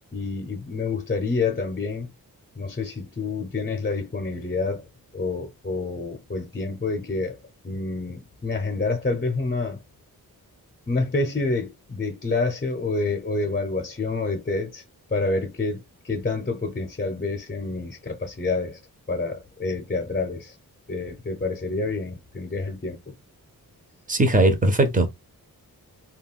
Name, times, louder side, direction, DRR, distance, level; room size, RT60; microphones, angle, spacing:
voice 1, 0.1-2.1 2.6-4.8 5.1-7.4 7.6-9.8 10.9-14.8 15.1-18.8 19.1-20.5 20.9-23.1, left 3 dB, 25° left, 0.7 m, -28 dB
voice 2, 24.1-25.1, right 2 dB, 20° right, 0.6 m, -19 dB
2.4 x 2.2 x 3.5 m
wide cardioid pair, 90°, 38 cm